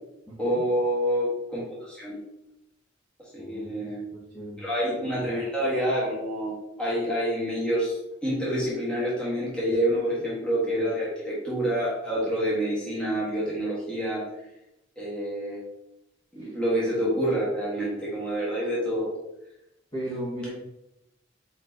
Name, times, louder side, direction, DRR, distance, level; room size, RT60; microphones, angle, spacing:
voice 1, 0.4-2.2 3.3-4.0 4.6-8.0 8.2-14.2 15.0-15.6 16.3-19.1, equal, 5° left, -8 dB, 1.3 m, -27 dB
voice 2, 3.4-4.6 16.4-16.6 19.9-20.6, equal, 25° left, -10 dB, 1.3 m, -36 dB
4.5 x 4.3 x 2.6 m, 0.86 s
head